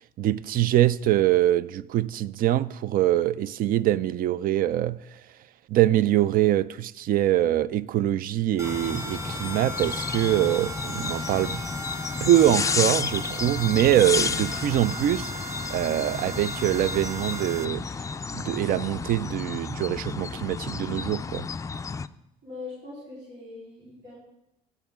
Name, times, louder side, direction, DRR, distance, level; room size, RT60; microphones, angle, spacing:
voice 1, 0.0-5.2 5.7-11.6 12.2-15.3 15.7-17.8 18.3-21.5, right 13 dB, 60° right, 0.4 m, -24 dB
sound 1, 8.6-22.1, left 5 dB, 20° left, 0.3 m, -32 dB
sound 2, 8.6-17.7, equal, 15° right, 0.9 m, -37 dB
voice 2, 22.4-24.2, left 3 dB, 80° right, 4.0 m, -41 dB
15.5 x 8.0 x 3.6 m
cardioid pair, 110°, 17 cm